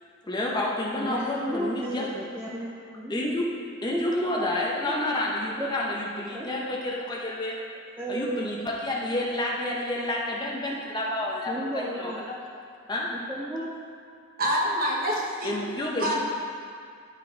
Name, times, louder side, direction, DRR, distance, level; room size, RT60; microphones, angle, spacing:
voice 1, 0.3-2.1 3.1-3.5 3.8-7.6 8.1-12.4 12.9-13.1 15.4-16.1, left 1 dB, 20° left, -3 dB, 0.9 m, -29 dB
voice 2, 1.0-3.3 3.9-4.9 5.6-5.7 6.3-6.5 8.0-8.5 11.5-12.2 13.3-13.7, right 1 dB, 10° right, -7 dB, 0.7 m, -34 dB
voice 3, 14.4-15.5 16.0-16.2, equal, 45° right, -3 dB, 1.2 m, -26 dB
13.0 x 4.5 x 3.4 m, 2.2 s
head